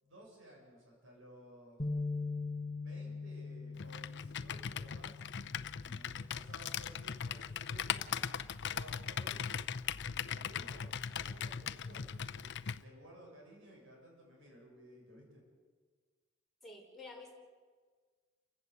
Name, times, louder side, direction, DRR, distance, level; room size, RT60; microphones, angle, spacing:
voice 1, 0.0-1.9 2.8-9.4 10.1-15.4, right 1 dB, 70° right, 0 dB, 7.5 m, -57 dB
sound 1, 1.8-8.0, left 3 dB, 30° left, 1.3 m, -43 dB
Computer keyboard, 3.8-12.8, left 7 dB, 60° left, 0.6 m, -39 dB
voice 2, 16.6-17.3, left 2 dB, ahead, -3 dB, 5.6 m, -50 dB
29.5 x 15.5 x 8.2 m, 1.5 s
head